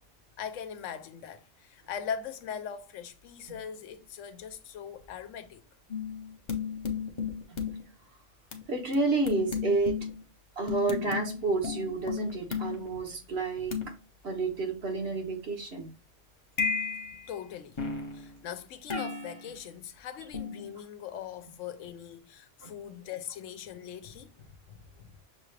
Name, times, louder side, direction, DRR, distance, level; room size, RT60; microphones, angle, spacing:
voice 1, 0.4-5.6 17.3-17.8 18.1-25.2, left 8 dB, 85° left, 1.0 m, -41 dB
sound 1, 5.9-7.8 8.5-8.6 8.9-9.0 9.3-10.2 10.7-12.9 13.7-13.9 16.6-17.3 17.8-18.3 18.9-19.5 20.3-20.7, left 6 dB, 30° left, 0.6 m, -33 dB
voice 2, 8.7-10.0 10.6-13.9 14.2-15.9 22.6-22.7, right 3 dB, 60° right, 1.3 m, -30 dB
6.6 x 2.4 x 3.1 m
omnidirectional pair, 1.2 m